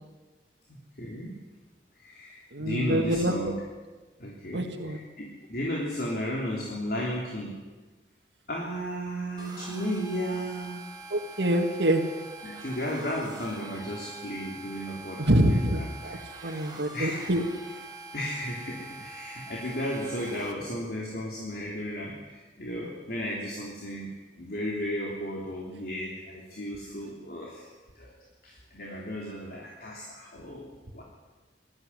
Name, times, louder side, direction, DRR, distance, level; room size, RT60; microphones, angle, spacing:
voice 1, 0.7-1.3 1.9-3.5 4.2-7.5 8.5-10.8 12.4-15.6 16.1-17.3 18.1-24.1 24.4-27.7 27.9-28.1 28.4-31.0, equal, 55° left, -2 dB, 3.4 m, -34 dB
voice 2, 2.5-3.3 4.5-5.0 11.1-12.0 15.2-17.4, right 1 dB, 85° right, 0 dB, 2.0 m, -26 dB
sound 1, 9.4-20.5, right 3 dB, 25° right, 2.6 m, -44 dB
21.0 x 14.0 x 9.8 m, 1.3 s
head